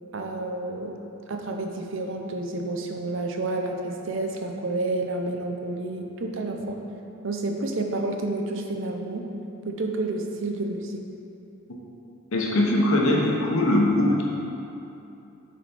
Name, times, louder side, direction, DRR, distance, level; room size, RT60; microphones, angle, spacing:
voice 1, 0.1-1.0 1.3-6.8 7.2-9.3 9.7-11.0, right 2 dB, 60° right, 3 dB, 0.6 m, -30 dB
voice 2, 12.3-14.2, left 1 dB, 70° left, -2 dB, 1.0 m, -21 dB
6.9 x 4.3 x 4.4 m, 2.8 s
head